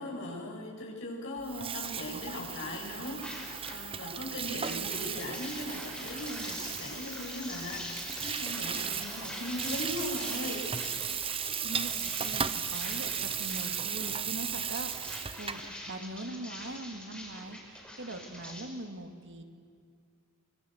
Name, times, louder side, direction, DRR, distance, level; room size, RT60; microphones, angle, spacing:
voice 1, 0.0-10.7, left 1 dB, 65° left, -2 dB, 8.0 m, -39 dB
Water tap faucet / Sink (filling or washing), 1.4-15.7, right 7 dB, 25° right, 0.8 m, -36 dB
sound 1, 1.8-3.8 4.1-18.6, left 1 dB, 5° left, 5.6 m, -44 dB
voice 2, 11.6-19.4, right 1 dB, 60° right, 6 dB, 2.3 m, -42 dB
24.5 x 24.0 x 8.0 m, 2.2 s
head